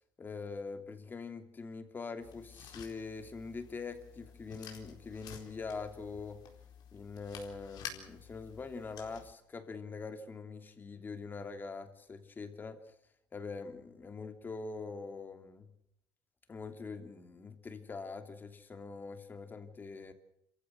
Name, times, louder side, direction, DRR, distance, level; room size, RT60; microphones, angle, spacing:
voice 1, 0.2-6.4 6.9-12.8 13.3-15.7 16.5-20.1, left 4 dB, 30° left, 7 dB, 2.8 m, -43 dB
sound 1, 2.2-9.3, left 8 dB, 75° left, 4.3 m, -51 dB
27.0 x 15.0 x 7.7 m, 0.76 s
cardioid pair, 115°, 7 cm